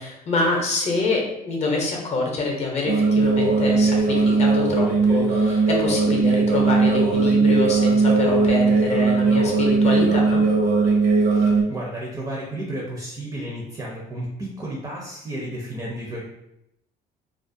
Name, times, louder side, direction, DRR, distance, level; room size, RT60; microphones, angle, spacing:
voice 1, 0.0-10.4, left 2 dB, 40° left, 0 dB, 0.7 m, -26 dB
sound 1, 2.9-11.6, right 3 dB, 70° right, 0.7 m, -19 dB
voice 2, 11.2-16.3, right 1 dB, 20° right, -3 dB, 0.5 m, -32 dB
2.4 x 2.1 x 2.5 m, 0.82 s
cardioid pair, 110°, 17 cm